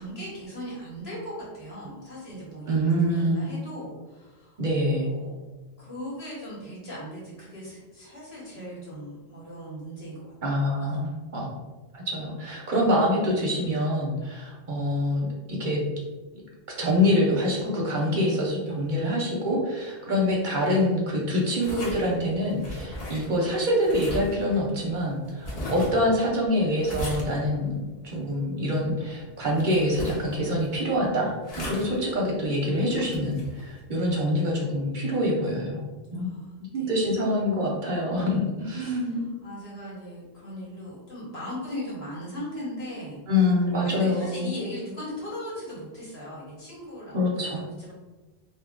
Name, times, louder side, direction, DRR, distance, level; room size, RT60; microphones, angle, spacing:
voice 1, 0.0-2.8 3.1-5.4 5.8-10.3 36.1-36.9 38.8-43.2 43.8-47.9, equal, 70° left, -7 dB, 1.5 m, -38 dB
voice 2, 2.7-3.5 4.6-5.1 10.4-11.5 11.9-15.8 16.8-35.9 36.1-36.3 36.7-39.2 43.3-44.5 47.1-47.6, left 1 dB, 55° right, -2 dB, 0.7 m, -25 dB
sound 1, 21.6-33.8, left 1 dB, 40° left, 0.7 m, -38 dB
2.8 x 2.3 x 3.6 m, 1.2 s
omnidirectional pair, 1.1 m